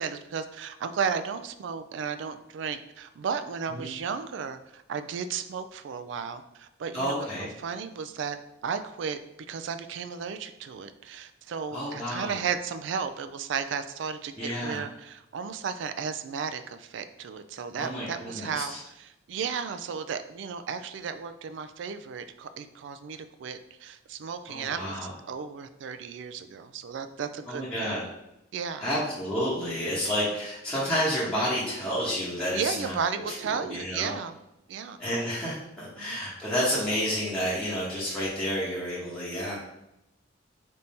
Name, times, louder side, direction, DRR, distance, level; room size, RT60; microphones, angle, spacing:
voice 1, 0.0-9.2 9.5-25.0 25.3-28.0 28.5-28.9 32.5-34.4 34.7-35.0 36.0-36.2, right 6 dB, 65° right, 10 dB, 0.3 m, -34 dB
voice 2, 6.9-7.5 11.7-12.3 14.4-14.8 17.8-18.8 24.5-25.1 27.5-28.0 28.8-33.0 33.6-34.1 35.0-39.6, equal, 5° left, -10 dB, 1.0 m, -30 dB
3.6 x 2.6 x 4.2 m, 0.87 s
head